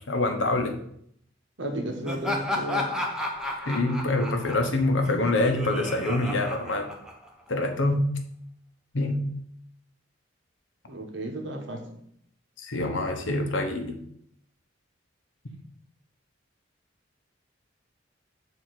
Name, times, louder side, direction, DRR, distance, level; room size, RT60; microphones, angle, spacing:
voice 1, 0.1-0.7 3.6-6.9 7.5-8.0 8.9-9.2 12.6-13.9, left 2 dB, 85° left, 5 dB, 1.0 m, -25 dB
voice 2, 1.6-2.9 10.9-11.8, right 1 dB, 80° right, 3 dB, 1.2 m, -33 dB
Laughter, 2.0-7.5, left 1 dB, 5° right, 0.8 m, -33 dB
7.4 x 2.9 x 5.8 m, 0.68 s
head